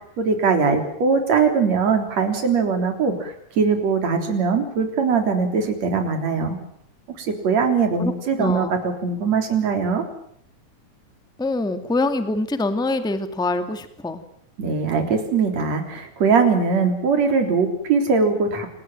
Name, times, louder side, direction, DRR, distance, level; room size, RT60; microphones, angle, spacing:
voice 1, 0.2-6.6 7.2-10.0 14.6-18.7, right 5 dB, 60° right, 5 dB, 4.8 m, -21 dB
voice 2, 8.0-8.7 11.4-14.2, left 2 dB, ahead, 8 dB, 1.5 m, -25 dB
28.5 x 18.5 x 9.1 m, 0.72 s
omnidirectional pair, 3.5 m